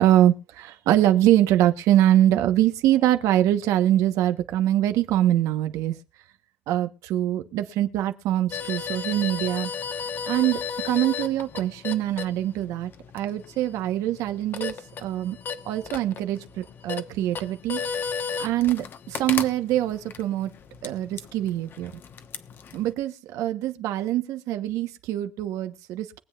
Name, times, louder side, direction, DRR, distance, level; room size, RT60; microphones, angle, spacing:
voice 1, 0.0-6.0 6.7-9.7 10.3-15.4 15.6-17.8 18.4-20.5 20.8-21.9 22.7-26.2, right 13 dB, 65° right, 1.1 m, -23 dB
sound 1, 8.5-22.9, left 6 dB, 35° left, 1.1 m, -35 dB
23.0 x 8.0 x 2.4 m
cardioid pair, 135°, 6 cm